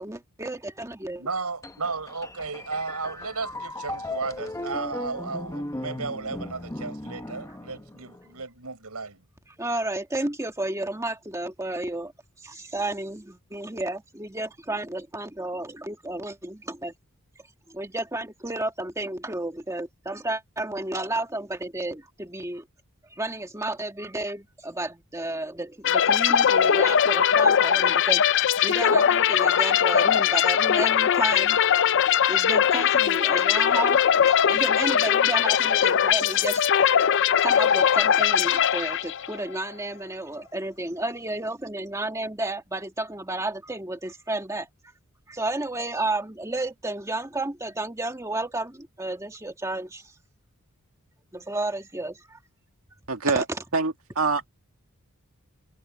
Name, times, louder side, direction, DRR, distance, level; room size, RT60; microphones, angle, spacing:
voice 1, 0.0-1.3 9.6-12.1 12.4-16.9 17.7-22.7 23.1-28.2 28.6-31.6 31.9-34.0 34.3-36.7 37.4-44.7 45.3-50.0 51.3-52.4 53.3-53.4, right 2 dB, 15° right, 1.8 m, -32 dB
voice 2, 1.2-9.2, right 4 dB, 90° right, 5.5 m, -34 dB
sound 1, 1.6-8.3, left 1 dB, 15° left, 0.9 m, -37 dB
sound 2, 25.8-39.4, left 8 dB, 55° left, 0.4 m, -20 dB
voice 3, 53.1-53.4 53.7-54.5, right 4 dB, 70° right, 1.9 m, -25 dB
head